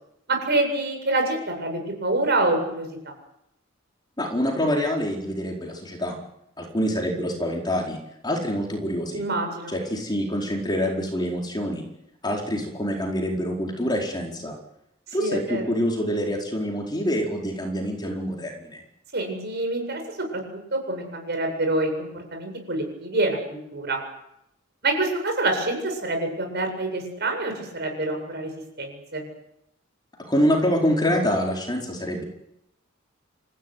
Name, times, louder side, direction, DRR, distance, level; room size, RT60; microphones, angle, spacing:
voice 1, 0.3-2.9 9.1-9.8 15.2-15.6 19.1-20.4 20.7-24.0 24.8-28.5 28.8-29.2, right 2 dB, 55° right, 4 dB, 7.9 m, -26 dB
voice 2, 4.2-6.2 6.6-8.0 8.2-9.2 9.7-11.8 12.2-14.5 15.1-18.8 30.2-32.2, equal, 20° left, 0 dB, 4.6 m, -26 dB
29.0 x 15.5 x 9.5 m, 0.81 s
head